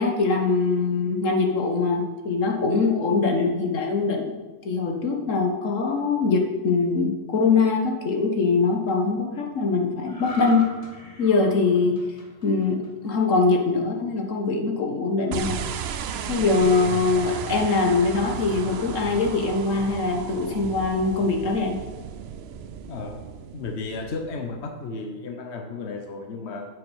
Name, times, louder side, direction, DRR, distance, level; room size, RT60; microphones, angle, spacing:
voice 1, 0.0-4.4 4.6-10.6 11.2-12.0 12.4-15.6 16.3-21.7, left 4 dB, 80° left, 2 dB, 1.6 m, -22 dB
sound 1, 10.1-13.5 14.0-14.2, left 1 dB, 30° left, 1.6 m, -42 dB
sound 2, 15.3-24.7, right 8 dB, 60° right, 0.8 m, -34 dB
voice 2, 22.9-23.2 23.5-26.7, left 3 dB, 60° left, 4 dB, 1.3 m, -33 dB
8.6 x 7.3 x 6.4 m, 1.2 s
omnidirectional pair, 1.3 m